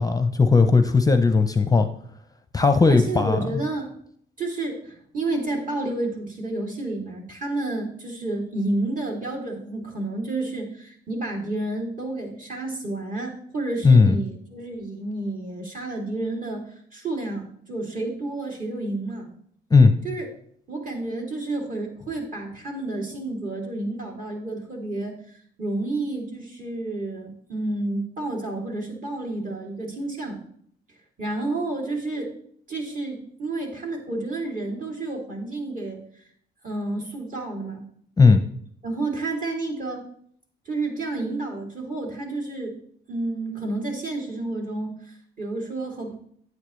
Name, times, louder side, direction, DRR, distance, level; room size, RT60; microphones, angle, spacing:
voice 1, 0.0-1.9 2.5-3.6 13.8-14.2 19.7-19.9 38.2-38.4, left 4 dB, 20° left, 9 dB, 0.6 m, -17 dB
voice 2, 2.9-3.9 4.4-19.3 20.0-20.3 20.7-25.2 25.6-30.4 31.2-32.3 32.7-36.0 36.6-37.8 38.8-40.0 40.6-42.8 43.1-46.2, right 2 dB, 45° right, 0 dB, 2.8 m, -30 dB
9.5 x 8.6 x 3.2 m, 0.62 s
cardioid pair, 90°, 20 cm